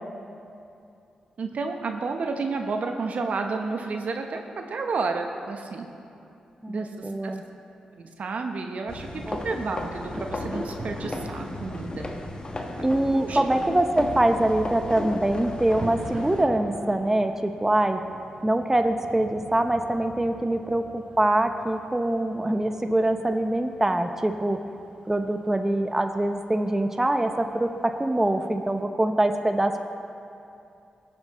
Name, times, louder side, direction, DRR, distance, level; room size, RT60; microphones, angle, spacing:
voice 1, 1.4-5.9 6.7-7.3 8.0-12.1 13.1-13.4, right 4 dB, 65° right, 4 dB, 0.9 m, -31 dB
voice 2, 6.6-7.4 9.3-9.4 12.8-18.0 18.4-24.6 25.1-29.8, right 1 dB, 15° right, 6 dB, 0.8 m, -24 dB
sound 1, 8.9-16.4, left 2 dB, 35° left, 1.4 m, -34 dB
sound 2, 10.8-28.8, right 1 dB, 45° right, 2.7 m, -45 dB
19.0 x 8.1 x 3.1 m, 2.6 s
supercardioid pair, 45°, 3 cm